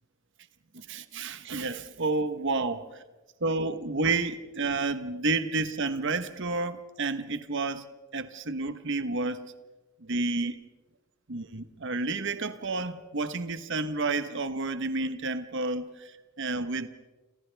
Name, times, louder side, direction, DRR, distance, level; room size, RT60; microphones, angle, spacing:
voice 1, 0.7-3.0 3.4-7.9 8.1-9.5 10.0-10.6 11.3-16.9, right 3 dB, 60° right, 10 dB, 1.2 m, -30 dB
29.0 x 28.0 x 3.5 m, 1.2 s
head